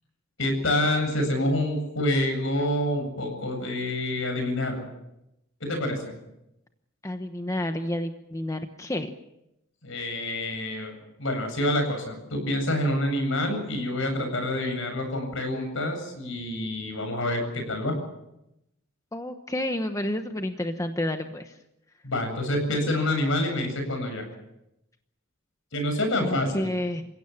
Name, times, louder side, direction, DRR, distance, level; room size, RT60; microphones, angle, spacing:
voice 1, 0.4-4.9 5.6-6.0 9.8-10.9 11.2-17.9 22.0-24.2 25.7-26.7, left 1 dB, 70° left, 5 dB, 8.0 m, -27 dB
voice 2, 7.0-9.1 19.1-21.6 26.2-27.0, left 1 dB, 15° left, 6 dB, 1.0 m, -30 dB
29.0 x 16.5 x 7.3 m, 0.87 s
head